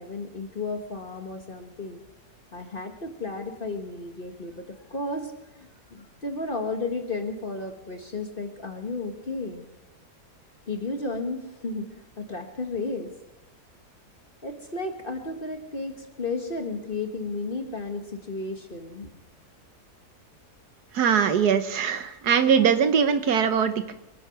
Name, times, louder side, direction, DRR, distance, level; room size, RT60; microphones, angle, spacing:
voice 1, 0.0-2.0 2.5-9.6 10.7-13.1 14.4-19.1, left 3 dB, 35° left, 5 dB, 1.5 m, -33 dB
voice 2, 20.9-23.9, right 7 dB, 75° right, 10 dB, 1.6 m, -21 dB
23.5 x 10.0 x 5.8 m, 0.93 s
omnidirectional pair, 1.7 m